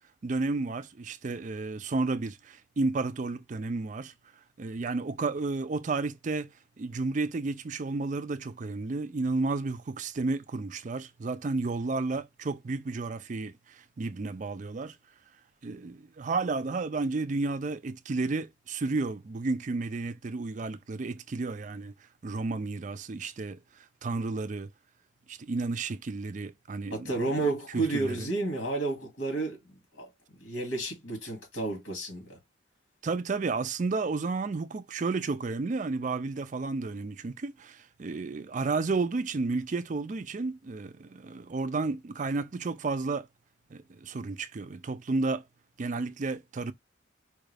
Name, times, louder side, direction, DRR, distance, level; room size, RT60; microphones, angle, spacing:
voice 1, 0.2-4.1 4.6-6.5 6.8-13.5 14.0-15.0 15.6-21.9 22.2-23.6 24.0-24.7 25.3-27.4 27.7-28.3 33.0-43.3 43.7-45.4 45.8-46.7, right 3 dB, 40° right, 0.4 m, -32 dB
voice 2, 26.9-30.1 30.4-32.4, right 2 dB, 85° left, 2.2 m, -31 dB
4.6 x 2.4 x 3.3 m
head